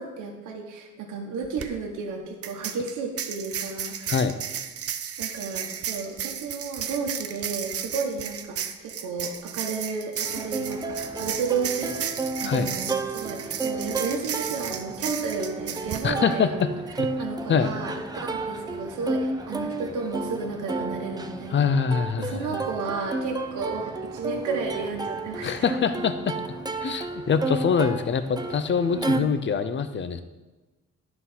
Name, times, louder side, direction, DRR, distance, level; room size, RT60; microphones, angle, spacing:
voice 1, 0.0-4.2 5.2-12.1 12.4-16.6 16.9-21.6 22.2-25.7 28.9-29.4, right 4 dB, 80° right, 1 dB, 1.2 m, -33 dB
sound 1, 1.4-1.7 2.4-16.1, right 9 dB, 50° right, 0.6 m, -34 dB
Plucked string instrument, 10.2-29.2, right 3 dB, 15° right, 0.6 m, -32 dB
voice 2, 16.0-16.7 17.0-17.1 17.5-17.7 21.5-22.6 25.4-26.4 26.8-30.2, left 6 dB, 40° left, 11 dB, 0.6 m, -24 dB
10.0 x 4.0 x 5.6 m, 1.2 s
cardioid pair, 90°, 30 cm